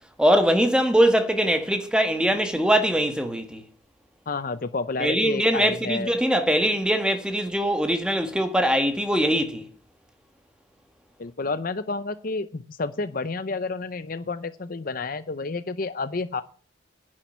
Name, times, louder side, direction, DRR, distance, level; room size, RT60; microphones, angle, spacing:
voice 1, 0.2-3.6 5.0-9.6, equal, 5° right, 1.5 m, -22 dB
voice 2, 4.3-6.1 11.2-16.4, left 3 dB, 45° left, 0.6 m, -30 dB
10.5 x 7.5 x 9.2 m
head